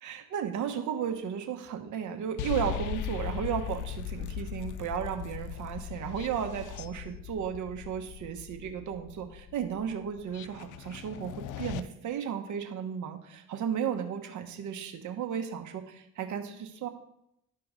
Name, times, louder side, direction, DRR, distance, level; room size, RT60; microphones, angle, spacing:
voice 1, 0.0-16.9, right 8 dB, 75° right, 6 dB, 1.1 m, -34 dB
sound 1, 2.4-11.8, left 10 dB, 85° left, 0.5 m, -39 dB
12.5 x 4.8 x 3.7 m, 0.76 s
cardioid pair, 90°, 30 cm